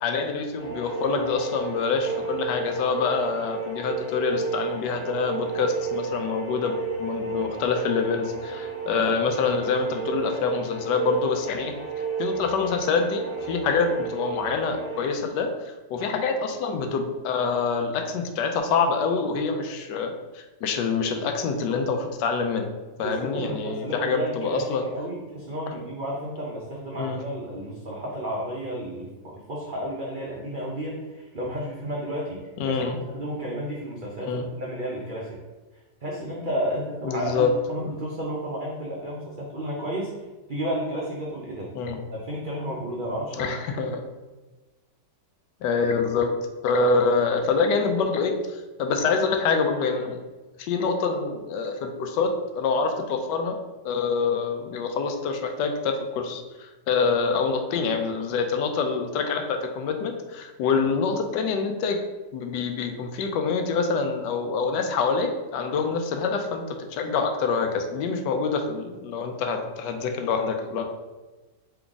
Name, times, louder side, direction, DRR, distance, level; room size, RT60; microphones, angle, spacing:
voice 1, 0.0-11.7 12.2-15.5 15.9-22.7 23.0-24.8 26.9-27.2 32.6-33.0 34.3-34.5 37.0-37.5 41.7-42.0 43.4-44.0 45.6-46.3 46.6-50.2 50.6-53.6 53.8-62.0 62.3-70.8, left 4 dB, 85° left, 5 dB, 1.2 m, -26 dB
sound 1, 0.6-15.1, right 4 dB, 55° left, 2.0 m, -33 dB
voice 2, 23.0-35.4 35.7-41.7 42.1-43.6, equal, 80° right, -4 dB, 0.4 m, -32 dB
3.5 x 3.4 x 3.8 m, 1.2 s
omnidirectional pair, 1.9 m